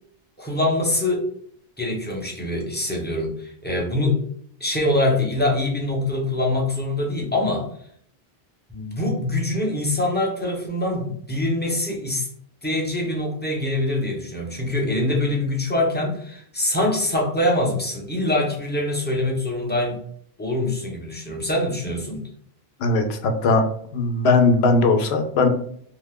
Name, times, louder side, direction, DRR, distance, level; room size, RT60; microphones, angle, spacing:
voice 1, 0.4-1.3 1.8-4.2 4.6-7.7 8.7-12.3 12.6-20.0 20.4-22.3, left 1 dB, 10° left, -2 dB, 0.6 m, -24 dB
voice 2, 22.8-23.6 23.9-25.5, left 3 dB, 85° left, 6 dB, 0.9 m, -19 dB
2.8 x 2.2 x 3.4 m, 0.62 s
omnidirectional pair, 1.0 m